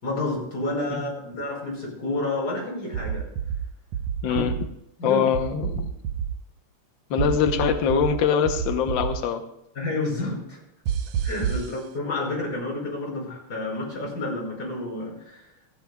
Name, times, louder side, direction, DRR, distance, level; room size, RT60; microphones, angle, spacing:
voice 1, 0.0-3.3 4.3-4.4 5.0-5.2 7.1-7.3 9.8-10.6 11.2-15.5, left 2 dB, 30° left, -4 dB, 5.8 m, -30 dB
sound 1, 2.9-3.6 3.9-4.6 5.3-6.3 7.2-8.1 8.4-9.1 10.9-11.7, right 8 dB, 70° right, 1.8 m, -27 dB
voice 2, 4.2-4.5 5.0-5.9 7.1-9.4, left 7 dB, 85° left, 6 dB, 1.0 m, -23 dB
28.0 x 9.5 x 2.3 m, 0.79 s
omnidirectional pair, 3.4 m